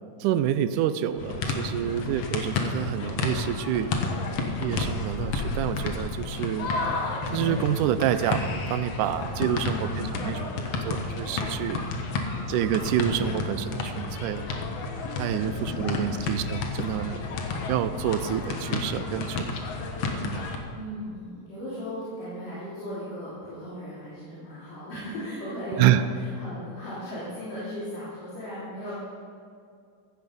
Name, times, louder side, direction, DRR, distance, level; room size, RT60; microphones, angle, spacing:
voice 1, 0.2-3.9 4.6-6.7 7.3-10.5 10.9-11.9 12.5-14.5 15.2-17.3 17.7-19.7 20.2-20.5 25.8-26.0, right 11 dB, 80° right, 12 dB, 2.0 m, -28 dB
sound 1, 1.2-20.6, left 3 dB, 60° left, 2.1 m, -31 dB
voice 2, 9.6-10.3 15.4-16.3 20.7-28.9, equal, 85° left, -11 dB, 5.4 m, -37 dB
15.5 x 14.0 x 5.4 m, 2.3 s
omnidirectional pair, 3.7 m